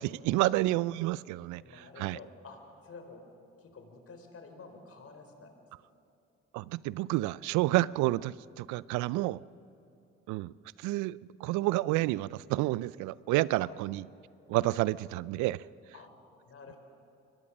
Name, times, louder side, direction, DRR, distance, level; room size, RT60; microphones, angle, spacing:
voice 1, 0.0-1.6 2.0-2.2 6.5-9.4 10.3-10.5 10.8-14.1 14.5-15.6, right 18 dB, 75° right, 21 dB, 0.5 m, -29 dB
voice 2, 1.6-3.2 3.6-5.5 13.6-13.8 15.9-16.1 16.5-16.8, left 4 dB, 50° left, 5 dB, 4.2 m, -50 dB
24.0 x 19.5 x 6.2 m, 2.8 s
hypercardioid pair, 55°, 30 cm